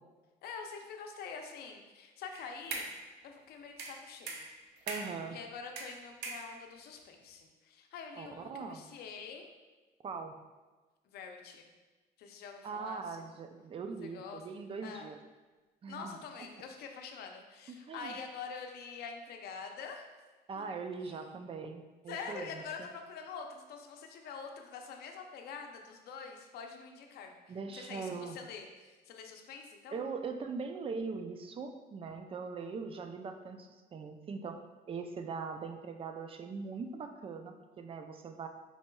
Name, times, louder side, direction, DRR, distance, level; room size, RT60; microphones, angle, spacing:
voice 1, 0.4-2.9 3.2-4.5 5.3-9.5 11.1-11.7 12.2-13.3 14.0-14.4 14.8-15.1 15.9-20.1 20.6-20.7 21.1-21.2 22.1-30.0, left 5 dB, 70° left, 3 dB, 0.6 m, -46 dB
sound 1, 2.3-3.1 3.8-5.2 5.8-6.8, right 3 dB, 80° right, 0.6 m, -42 dB
voice 2, 4.9-5.4 8.2-8.9 10.0-10.4 12.6-15.2 15.8-16.2 17.7-18.1 20.5-22.9 27.5-28.4 29.9-34.6 34.9-38.5, right 5 dB, 35° right, 6 dB, 0.4 m, -41 dB
4.5 x 4.1 x 2.2 m, 1.2 s
cardioid pair, 110°, 17 cm